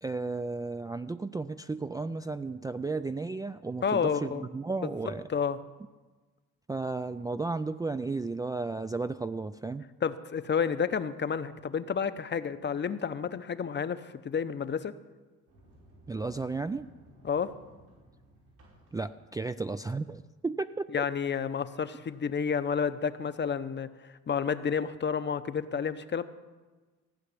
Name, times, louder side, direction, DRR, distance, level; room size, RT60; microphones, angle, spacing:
voice 1, 0.0-5.2 6.7-9.8 16.1-16.9 18.9-20.9, right 3 dB, 15° right, 9 dB, 0.3 m, -34 dB
voice 2, 3.8-4.4 5.3-5.6 10.0-14.9 17.2-17.5 20.9-26.2, left 6 dB, 35° left, 12 dB, 0.8 m, -30 dB
Sliding door, 15.5-20.3, right 1 dB, 90° right, 5.5 m, -58 dB
15.5 x 5.8 x 9.7 m, 1.3 s
cardioid pair, 90°, 30 cm